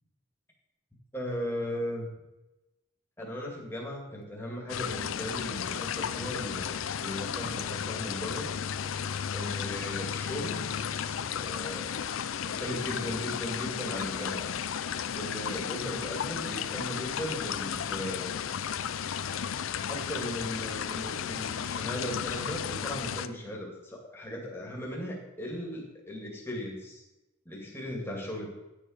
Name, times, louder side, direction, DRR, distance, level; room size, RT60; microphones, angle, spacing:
voice 1, 1.1-2.1 3.2-6.7 7.0-8.5 9.3-10.7 11.3-12.0 12.4-14.5 15.1-18.3 19.9-27.0 27.5-28.5, equal, 10° left, -1 dB, 2.0 m, -37 dB
sound 1, 4.7-23.3, left 8 dB, 75° left, 0.5 m, -34 dB
10.0 x 6.6 x 4.9 m, 0.99 s
head